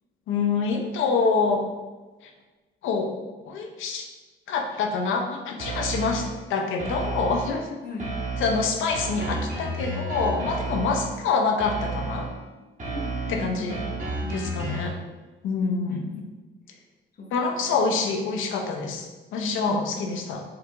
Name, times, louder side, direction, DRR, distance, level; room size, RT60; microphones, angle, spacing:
voice 1, 0.3-1.6 2.2-2.3 2.8-3.1 3.4-4.1 4.5-7.8 8.4-12.3 13.3-13.8 14.3-14.9 15.4-16.2 17.3-20.4, left 4 dB, 80° left, 3 dB, 0.7 m, -26 dB
sound 1, 5.6-6.4 6.8-7.6 8.0-11.2 11.6-12.4 12.8-15.0, right 2 dB, 40° right, 1.3 m, -32 dB
voice 2, 7.8-8.2 12.9-14.9 15.6-16.3 17.2-17.3 17.6-17.8 19.7-19.9, left 2 dB, 50° left, 1 dB, 0.9 m, -37 dB
4.7 x 2.5 x 3.4 m, 1.2 s
cardioid pair, 90°, 20 cm